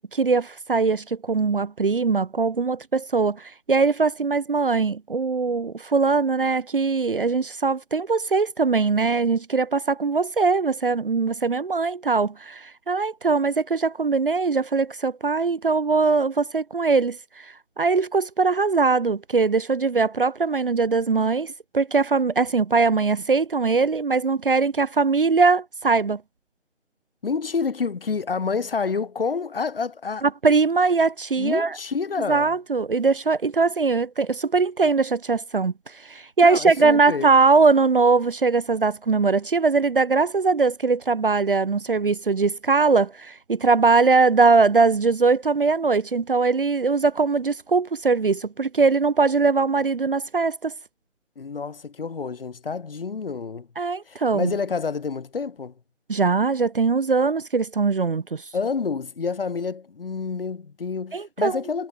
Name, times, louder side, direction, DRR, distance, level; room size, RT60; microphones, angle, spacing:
voice 1, 0.0-26.2 30.2-31.8 32.3-50.7 53.8-54.5 56.1-58.4 61.1-61.6, right 4 dB, 45° right, 0.6 m, -21 dB
voice 2, 27.2-30.3 31.4-32.5 36.4-37.3 51.4-53.7 54.1-55.7 58.5-61.9, left 5 dB, 50° left, 1.4 m, -28 dB
figure-of-eight pair, 160°, 37 cm